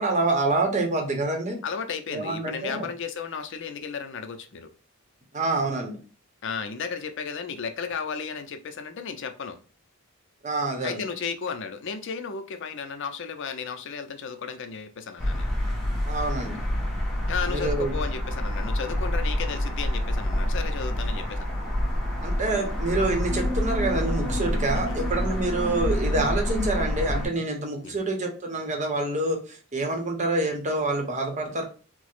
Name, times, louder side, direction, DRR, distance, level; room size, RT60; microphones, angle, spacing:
voice 1, 0.0-1.6 2.1-2.9 5.3-6.0 10.4-11.0 16.1-16.6 17.5-17.9 22.2-31.6, right 2 dB, 35° right, 2 dB, 0.8 m, -27 dB
voice 2, 1.6-4.7 6.4-9.6 10.8-15.5 17.3-21.8 24.7-25.0 27.8-27.9, left 6 dB, 55° left, 7 dB, 0.5 m, -34 dB
sound 1, 15.2-27.3, left 1 dB, ahead, 0.9 m, -27 dB
4.4 x 2.0 x 2.4 m, 0.37 s
head